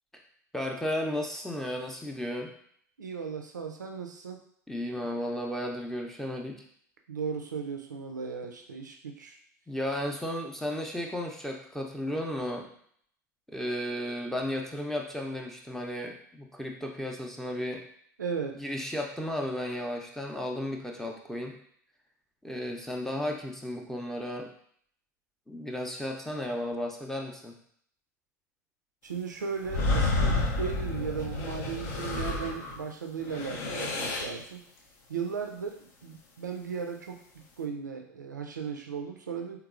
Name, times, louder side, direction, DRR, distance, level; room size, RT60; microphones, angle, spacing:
voice 1, 0.5-2.5 4.7-6.6 9.7-12.7 13.5-17.8 18.6-21.6 22.4-24.5 25.5-27.5, left 1 dB, 5° left, 1 dB, 0.6 m, -34 dB
voice 2, 3.0-4.4 7.1-9.4 18.2-18.6 29.0-34.6 35.1-39.6, right 6 dB, 85° right, 4 dB, 0.4 m, -36 dB
sound 1, 29.6-32.8 33.2-34.4, left 2 dB, 55° left, 0.6 m, -30 dB
3.6 x 2.8 x 2.4 m, 0.63 s
figure-of-eight pair, 75°, 10 cm